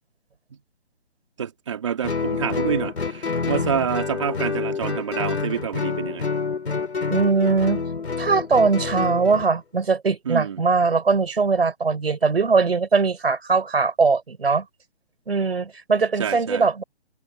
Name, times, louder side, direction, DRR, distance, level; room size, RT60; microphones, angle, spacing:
voice 1, 1.4-6.2 10.2-10.6 16.2-16.7, right 8 dB, 30° right, 3.1 m, -27 dB
Guitar, 2.0-9.5, left 4 dB, 75° left, 3.9 m, -27 dB
voice 2, 7.1-7.8 8.2-14.7 15.3-16.8, right 4 dB, 65° right, 4.8 m, -21 dB
hypercardioid pair, 180°, 33 cm